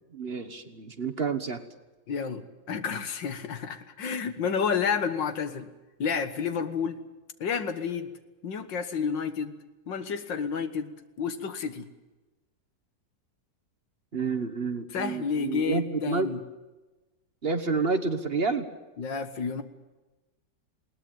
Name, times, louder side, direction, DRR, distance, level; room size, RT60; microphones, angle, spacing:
voice 1, 0.1-1.6 14.1-16.3 17.4-18.7, right 4 dB, 35° right, 9 dB, 1.4 m, -29 dB
voice 2, 2.1-5.7 6.0-7.0 7.4-8.1 8.4-9.5 9.9-10.9 11.2-11.9 14.9-16.4 19.0-19.6, left 6 dB, 85° left, 10 dB, 2.2 m, -30 dB
20.5 x 18.0 x 9.3 m, 1.1 s
omnidirectional pair, 1.9 m